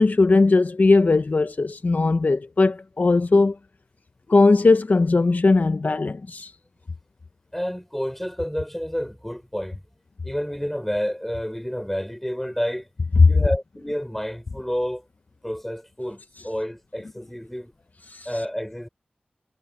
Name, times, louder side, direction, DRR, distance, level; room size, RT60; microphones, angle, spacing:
voice 1, 0.0-3.6 4.3-6.5 13.2-13.3 18.1-18.3, left 3 dB, 60° left, 0.8 m, -18 dB
voice 2, 7.5-9.8 10.2-12.9 13.2-15.0 15.4-17.7 18.3-18.9, equal, 5° left, 3.5 m, -29 dB
cardioid pair, 40°, 3 cm